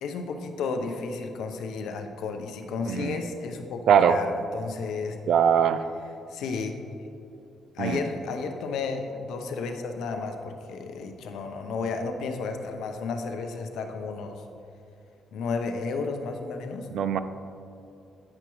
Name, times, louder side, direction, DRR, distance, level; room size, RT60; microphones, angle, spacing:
voice 1, 0.0-3.8 4.1-5.2 6.3-6.7 7.7-14.4 15.3-16.9, left 4 dB, 80° left, 5 dB, 0.7 m, -32 dB
voice 2, 2.9-3.2 3.9-4.2 5.3-5.8 7.8-8.0 16.9-17.2, right 8 dB, 70° right, 12 dB, 0.4 m, -21 dB
9.6 x 5.9 x 3.1 m, 2.6 s
cardioid pair, 90°, 0 cm